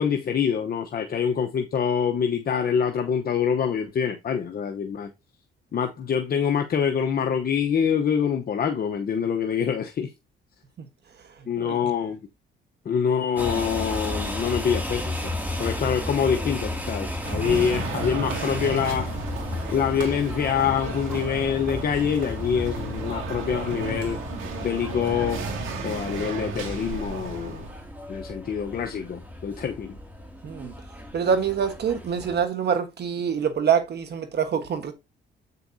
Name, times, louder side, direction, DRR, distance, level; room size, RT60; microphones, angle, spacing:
voice 1, 0.0-5.1 5.7-10.1 11.5-12.2 12.8-15.3 15.6-19.2 19.7-24.2 24.6-25.5 25.8-27.6 28.1-30.0, left 7 dB, 50° left, 0.9 m, -25 dB
sound 1, 13.4-32.4, left 1 dB, 10° right, 2.5 m, -34 dB
sound 2, 17.2-27.8, right 3 dB, 85° right, 2.2 m, -34 dB
voice 2, 30.4-30.7 31.1-34.9, right 7 dB, 55° right, 1.4 m, -25 dB
8.3 x 6.7 x 2.7 m
cardioid pair, 90°, 20 cm